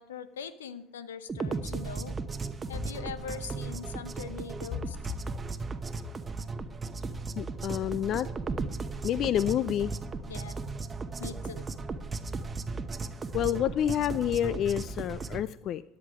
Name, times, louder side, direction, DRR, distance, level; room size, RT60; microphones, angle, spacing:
voice 1, 0.0-2.2 2.7-5.0 10.3-10.6 11.2-11.7, left 7 dB, 85° left, 14 dB, 0.8 m, -41 dB
sound 1, 1.3-15.4, right 4 dB, 25° right, 0.9 m, -36 dB
voice 2, 7.4-8.3 9.0-9.9 13.3-15.8, left 11 dB, 50° left, 17 dB, 0.4 m, -28 dB
13.5 x 9.7 x 4.9 m, 0.74 s
hypercardioid pair, 70°, 0 cm